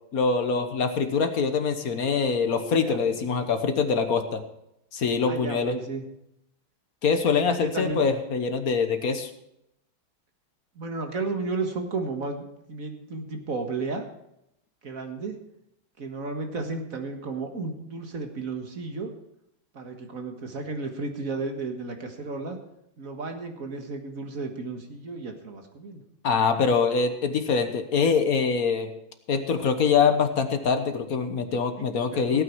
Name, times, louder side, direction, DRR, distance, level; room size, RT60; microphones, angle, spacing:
voice 1, 0.1-4.4 4.9-5.8 7.0-9.3 26.2-28.9 29.3-32.4, left 5 dB, 50° left, 8 dB, 1.4 m, -24 dB
voice 2, 5.3-6.1 7.5-8.0 10.8-14.1 14.8-15.4 16.0-19.1 19.7-22.6 23.0-26.0 31.8-32.4, right 3 dB, 45° right, 4 dB, 1.9 m, -33 dB
17.5 x 9.0 x 4.6 m, 0.81 s
omnidirectional pair, 2.2 m